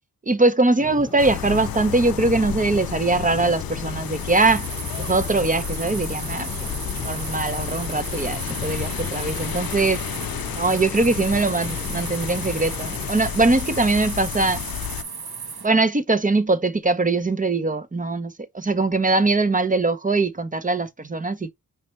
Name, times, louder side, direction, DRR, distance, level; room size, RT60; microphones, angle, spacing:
voice 1, 0.3-4.6 5.1-6.7 7.0-10.0 10.5-14.6 15.6-21.5, right 3 dB, 20° right, 0.7 m, -21 dB
sound 1, 0.8-13.1, left 2 dB, 15° left, 1.1 m, -39 dB
sound 2, 1.2-15.0, left 10 dB, 70° left, 0.5 m, -31 dB
sound 3, 3.9-15.7, right 5 dB, 75° right, 1.1 m, -36 dB
5.7 x 3.2 x 3.0 m
wide cardioid pair, 95°, 37 cm